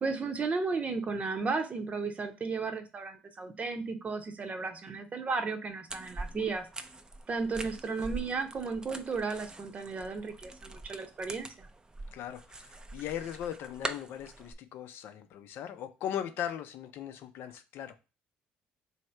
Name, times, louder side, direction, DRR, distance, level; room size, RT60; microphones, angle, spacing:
voice 1, 0.0-6.7 7.3-11.7, right 4 dB, 35° right, 0.8 m, -34 dB
sound 1, 5.9-14.5, right 2 dB, 20° right, 0.5 m, -43 dB
voice 2, 12.1-18.0, left 10 dB, 70° left, 0.5 m, -39 dB
3.1 x 2.8 x 4.4 m
supercardioid pair, 75°, 4 cm